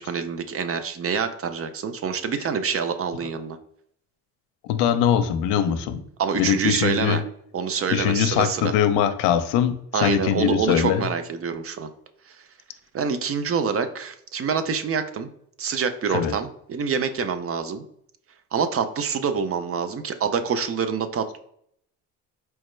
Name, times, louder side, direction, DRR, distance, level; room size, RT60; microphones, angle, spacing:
voice 1, 0.0-3.6 6.2-7.2 7.5-8.7 9.9-11.9 12.3-12.4 12.9-15.3 15.6-17.8 18.5-21.4, right 6 dB, 35° right, 10 dB, 0.4 m, -26 dB
voice 2, 4.7-6.0 6.4-7.2 7.9-11.1 16.1-16.3, left 9 dB, 80° left, 9 dB, 0.5 m, -22 dB
4.6 x 2.1 x 3.1 m, 0.69 s
supercardioid pair, 65°, 41 cm